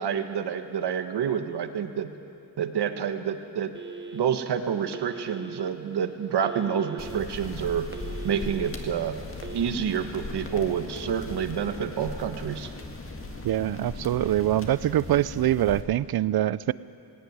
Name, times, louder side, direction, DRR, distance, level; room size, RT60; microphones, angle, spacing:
voice 1, 0.0-2.1 2.6-3.7 4.1-7.9 8.2-9.2 9.5-12.7, right 8 dB, 85° right, 8 dB, 1.4 m, -28 dB
Telephone, 3.7-4.4 4.9-5.7 6.4-7.2 7.6-8.7 9.3-9.8, right 4 dB, 30° right, 1.3 m, -39 dB
sound 1, 7.0-15.8, left 2 dB, 35° left, 1.9 m, -39 dB
voice 2, 13.4-16.7, right 13 dB, 65° right, 19 dB, 0.5 m, -24 dB
18.5 x 17.0 x 9.5 m, 2.6 s
wide cardioid pair, 135°, 40 cm